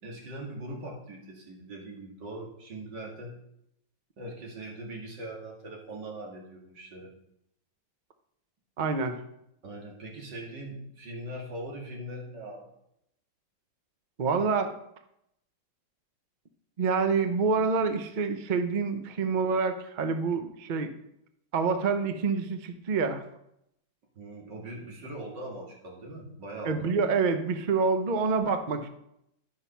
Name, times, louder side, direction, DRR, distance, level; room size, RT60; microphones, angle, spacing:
voice 1, 0.0-3.4 4.2-7.1 9.6-12.7 24.2-26.9, right 1 dB, 65° right, -2 dB, 2.8 m, -41 dB
voice 2, 8.8-9.2 14.2-14.7 16.8-20.9 21.5-23.2 26.6-28.9, right 4 dB, 85° right, 8 dB, 0.4 m, -27 dB
11.0 x 5.7 x 5.6 m, 0.79 s
omnidirectional pair, 2.1 m